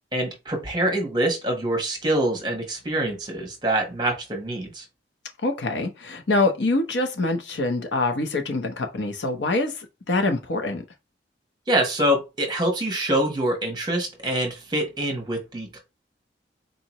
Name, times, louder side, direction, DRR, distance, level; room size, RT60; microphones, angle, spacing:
voice 1, 0.1-4.8 11.7-15.8, right 1 dB, 25° right, 1.0 m, -25 dB
voice 2, 5.4-10.8, left 2 dB, 75° left, 0.8 m, -25 dB
4.1 x 2.8 x 3.0 m
head